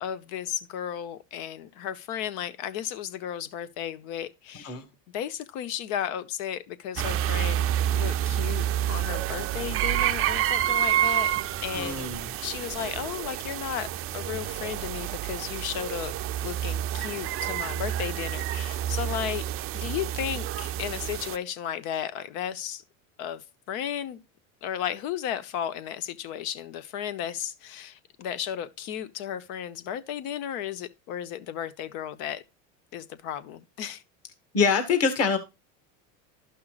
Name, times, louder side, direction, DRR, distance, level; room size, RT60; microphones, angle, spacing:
voice 1, 0.0-4.8 5.1-7.7 7.9-11.3 11.6-12.1 12.4-13.9 14.1-16.1 16.4-19.4 19.7-22.8 23.2-24.2 24.6-32.4 32.9-34.0, left 10 dB, 65° left, 1.1 m, -34 dB
sound 1, 7.0-21.4, right 11 dB, 35° right, 0.5 m, -29 dB
voice 2, 11.7-12.3 34.5-35.4, left 5 dB, 35° left, 1.9 m, -24 dB
12.5 x 5.7 x 2.4 m
supercardioid pair, 110°, 42 cm